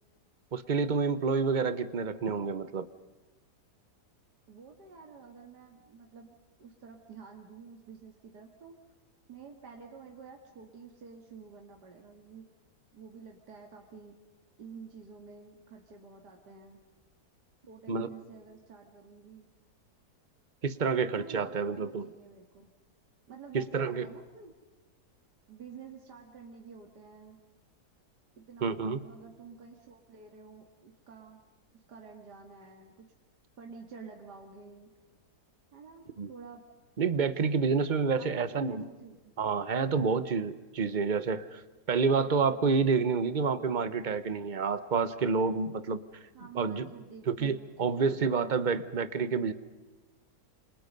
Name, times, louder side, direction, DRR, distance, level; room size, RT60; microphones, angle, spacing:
voice 1, 0.5-2.9 17.9-18.1 20.6-22.1 23.5-24.1 28.6-29.0 36.2-36.3 37.0-38.9 39.4-41.6 41.9-46.0 46.5-46.9 47.3-49.5, right 5 dB, 35° right, 13 dB, 0.9 m, -28 dB
voice 2, 4.5-8.8 9.3-12.5 12.9-14.2 14.6-16.8 17.7-19.5 20.8-22.7 23.3-24.6 25.5-27.4 28.4-31.4 31.9-33.1 33.6-34.9 35.7-36.7 38.2-39.3 46.3-48.2, right 5 dB, 80° right, 2 dB, 2.6 m, -50 dB
28.0 x 26.5 x 5.4 m, 1.2 s
omnidirectional pair, 1.8 m